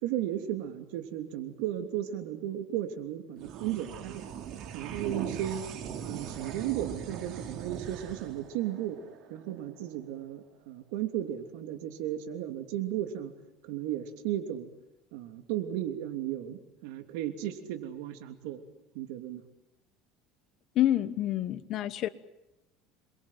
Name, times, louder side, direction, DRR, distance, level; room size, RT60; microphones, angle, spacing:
voice 1, 0.0-4.4 4.7-5.6 6.0-9.0 9.3-13.3 13.6-14.7 15.1-18.6 18.9-19.4, right 12 dB, 85° right, 7 dB, 3.1 m, -35 dB
sound 1, 3.4-10.1, right 8 dB, 50° right, 3.4 m, -40 dB
voice 2, 20.7-22.1, left 13 dB, 45° left, 14 dB, 1.2 m, -27 dB
27.0 x 23.0 x 7.6 m, 0.90 s
cardioid pair, 150°, 0 cm